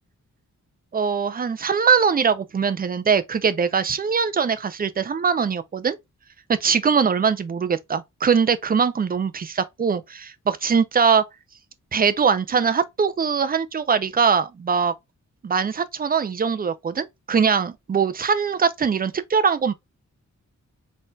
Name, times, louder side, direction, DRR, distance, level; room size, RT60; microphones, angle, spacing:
voice 1, 0.9-6.0 6.6-11.2 11.9-14.9 15.4-19.7, right 6 dB, 30° right, 0.4 m, -22 dB
4.2 x 3.9 x 2.2 m
wide cardioid pair, 175°, 31 cm